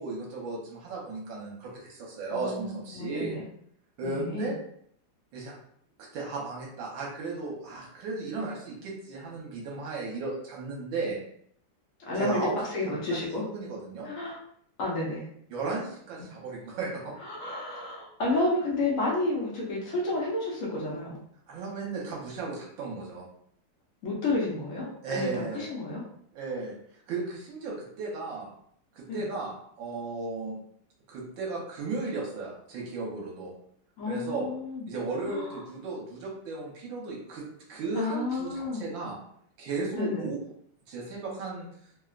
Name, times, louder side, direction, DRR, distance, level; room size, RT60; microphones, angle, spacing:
voice 1, 0.0-3.3 4.0-4.5 5.3-5.5 6.0-11.2 12.2-12.6 13.4-14.1 15.5-17.1 21.5-23.3 25.0-25.7 26.3-26.8 27.1-28.5 28.9-30.6 31.1-33.5 34.1-34.5 34.9-37.4 37.7-39.2 39.6-40.4 40.9-41.7, right 3 dB, 65° right, -3 dB, 1.4 m, -35 dB
voice 2, 2.3-3.5 4.0-4.5 12.1-13.4 14.0-14.4 14.8-15.2 17.2-21.2 24.0-26.0 29.1-29.2 34.0-34.9 35.3-35.6 37.9-38.8 39.9-40.3, left 2 dB, 80° left, -4 dB, 0.7 m, -31 dB
3.5 x 2.1 x 2.4 m, 0.66 s
omnidirectional pair, 2.4 m